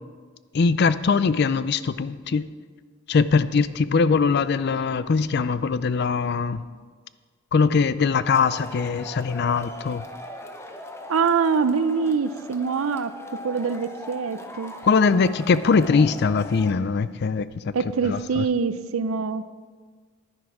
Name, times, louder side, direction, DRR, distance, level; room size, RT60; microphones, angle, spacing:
voice 1, 0.5-2.5 3.1-6.6 7.5-10.0 14.8-17.5 18.1-18.4, left 5 dB, 50° left, 15 dB, 0.4 m, -21 dB
Male speech man speaking / Shout / Clapping, 8.3-16.7, left 1 dB, 15° left, 0.7 m, -40 dB
voice 2, 11.1-13.1 13.4-14.7 17.7-19.4, right 5 dB, 90° right, 13 dB, 0.5 m, -24 dB
10.5 x 10.5 x 4.8 m, 1.5 s
head